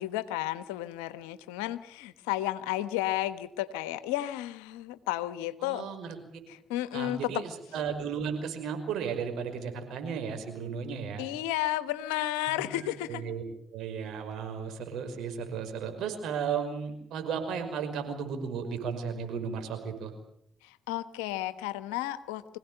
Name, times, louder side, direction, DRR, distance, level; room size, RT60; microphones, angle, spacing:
voice 1, 0.0-5.9 6.5-7.4 11.2-13.2 20.6-22.6, left 14 dB, 85° left, 13 dB, 1.2 m, -32 dB
voice 2, 5.6-6.2 6.9-11.3 12.5-12.8 13.1-13.4 13.7-20.1, right 6 dB, 75° right, 6 dB, 5.4 m, -34 dB
25.5 x 17.0 x 9.1 m, 0.71 s
hypercardioid pair, 45°, 0 cm